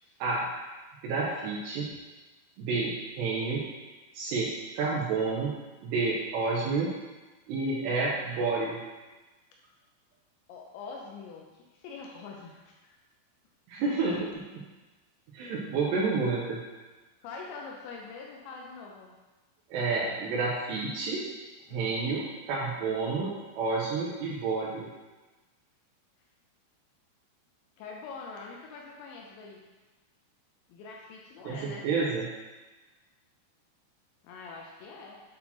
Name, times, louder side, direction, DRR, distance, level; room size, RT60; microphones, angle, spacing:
voice 1, 1.0-1.9 2.6-3.7 4.1-4.5 4.8-5.6 5.8-6.9 7.5-8.8 13.7-14.6 15.3-16.6 19.7-21.2 21.7-24.9 31.4-32.3, right 4 dB, 80° right, -4 dB, 2.6 m, -29 dB
voice 2, 10.5-11.4 11.8-13.0 17.2-19.1 21.7-22.0 27.8-29.6 30.7-31.9 34.2-35.2, left 4 dB, 80° left, -1 dB, 2.7 m, -44 dB
8.5 x 4.1 x 2.9 m, 1.2 s
omnidirectional pair, 5.6 m